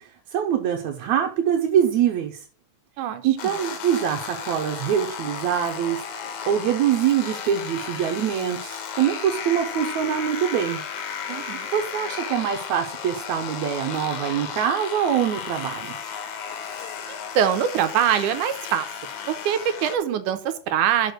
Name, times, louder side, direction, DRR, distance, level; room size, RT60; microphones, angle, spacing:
voice 1, 0.0-2.4 3.2-6.0 6.5-10.8 11.7-16.0, right 9 dB, 70° right, 2 dB, 2.2 m, -24 dB
voice 2, 3.0-3.5 11.3-11.7 17.1-18.9 19.3-21.1, right 9 dB, 85° right, 10 dB, 2.4 m, -24 dB
sound 1, 3.4-20.0, left 7 dB, 70° left, 2.5 m, -34 dB
6.7 x 5.2 x 6.4 m, 0.39 s
omnidirectional pair, 3.5 m